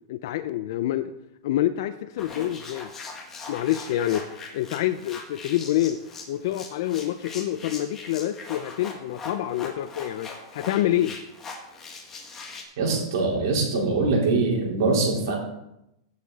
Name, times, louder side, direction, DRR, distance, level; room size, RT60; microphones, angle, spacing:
voice 1, 0.1-1.1 1.4-2.9 3.5-4.3 4.5-6.0 6.3-11.2, left 13 dB, 50° left, 11 dB, 0.5 m, -27 dB
sound 1, 2.2-12.6, left 4 dB, 15° left, 1.6 m, -41 dB
voice 2, 12.8-15.3, right 3 dB, 60° right, -2 dB, 4.0 m, -23 dB
16.5 x 6.6 x 4.1 m, 0.86 s
supercardioid pair, 170°, 2 cm